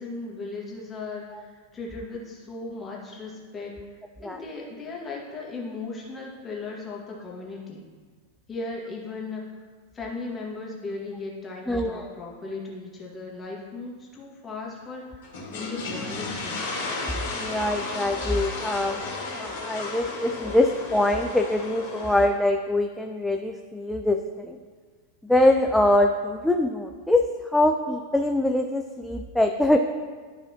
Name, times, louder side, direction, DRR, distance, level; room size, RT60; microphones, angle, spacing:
voice 1, 0.0-3.8 4.2-7.9 8.5-9.5 9.9-15.2 15.5-16.7, left 3 dB, 20° left, -3 dB, 1.8 m, -37 dB
voice 2, 11.7-12.1 17.3-19.0 19.3-24.6 25.2-27.2 27.5-29.8, left 1 dB, 5° left, 3 dB, 0.4 m, -23 dB
sound 1, 15.2-22.3, left 3 dB, 55° left, 2.1 m, -33 dB
12.0 x 4.8 x 2.9 m, 1.5 s
figure-of-eight pair, 90°, 0 cm